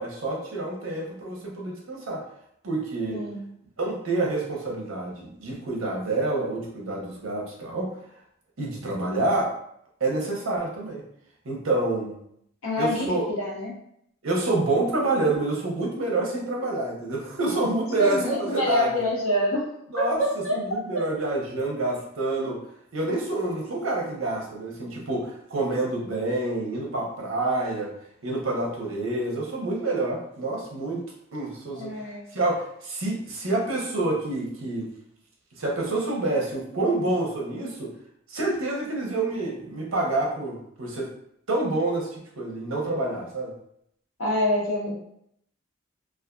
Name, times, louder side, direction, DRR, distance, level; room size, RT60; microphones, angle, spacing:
voice 1, 0.0-2.2 2.6-3.2 3.8-7.9 8.6-9.5 10.0-11.0 11.4-12.2 12.8-13.2 14.2-18.9 19.9-20.2 20.5-22.6 22.9-27.9 28.2-31.0 31.3-31.9 32.3-34.9 35.6-37.9 38.3-41.1 41.5-43.5, right 2 dB, 70° right, -1 dB, 0.7 m, -27 dB
voice 2, 3.1-3.4 12.6-13.7 18.0-19.7 20.0-21.1 31.8-32.2 44.2-45.0, left 1 dB, 70° left, -3 dB, 0.8 m, -26 dB
2.5 x 2.3 x 2.3 m, 0.73 s
head